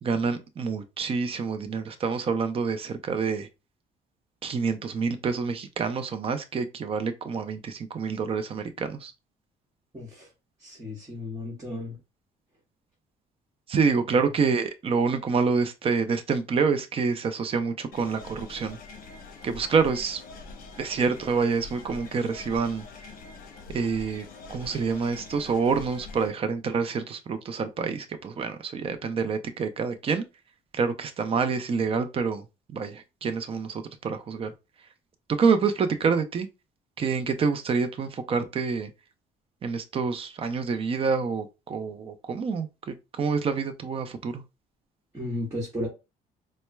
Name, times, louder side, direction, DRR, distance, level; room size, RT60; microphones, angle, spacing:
voice 1, 0.0-3.5 4.4-9.1 13.7-18.8 19.4-20.2 20.8-22.8 23.7-30.2 30.7-34.5 35.4-36.5 37.0-38.9 39.6-44.4, right 5 dB, 35° right, 0.5 m, -27 dB
voice 2, 9.9-10.3 10.6-12.0 45.1-45.9, left 1 dB, 15° right, 1.2 m, -34 dB
sound 1, 17.9-26.3, left 4 dB, 55° left, 0.8 m, -44 dB
4.3 x 2.1 x 2.2 m
cardioid pair, 110°, 17 cm